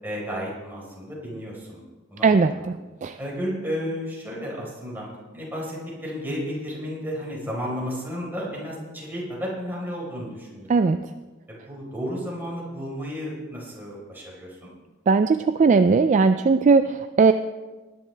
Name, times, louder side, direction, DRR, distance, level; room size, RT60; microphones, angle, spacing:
voice 1, 0.0-1.8 2.1-2.7 3.2-5.1 5.3-10.9 11.5-14.7, equal, 10° right, -4 dB, 4.2 m, -33 dB
voice 2, 2.2-3.2 10.7-11.0 15.1-17.3, right 4 dB, 35° right, 9 dB, 0.3 m, -19 dB
20.0 x 10.5 x 3.4 m, 1.3 s
head